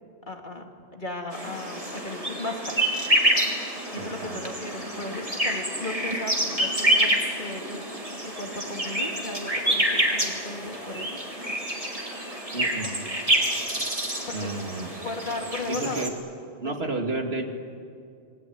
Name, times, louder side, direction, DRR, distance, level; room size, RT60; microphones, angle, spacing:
voice 1, 0.3-3.0 3.9-7.1 7.4-11.2 14.3-14.5 14.8-16.1 16.6-16.9, left 2 dB, 45° left, 3 dB, 2.6 m, -36 dB
sound 1, 1.3-16.1, right 1 dB, 30° right, 3.6 m, -27 dB
voice 2, 3.9-4.4 12.5-13.0 14.3-14.9 15.7-16.1 16.6-17.4, right 2 dB, 65° right, 3 dB, 2.6 m, -31 dB
27.5 x 21.5 x 9.5 m, 2.4 s
omnidirectional pair, 1.2 m